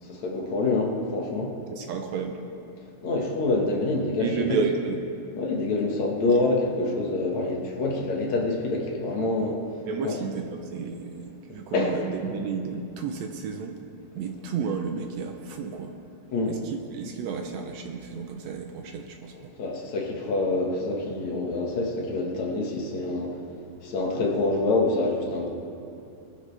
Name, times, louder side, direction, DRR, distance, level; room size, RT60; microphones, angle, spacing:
voice 1, 0.0-1.5 3.0-4.6 5.4-9.6 10.0-10.2 11.7-12.3 16.3-16.6 19.3-23.4 23.8-25.5, left 2 dB, 60° left, -1 dB, 2.6 m, -26 dB
voice 2, 1.7-2.4 4.2-5.0 9.9-13.7 14.2-15.9 16.5-19.3, right 5 dB, 85° right, 3 dB, 1.5 m, -32 dB
22.5 x 12.0 x 3.4 m, 2.7 s
omnidirectional pair, 4.1 m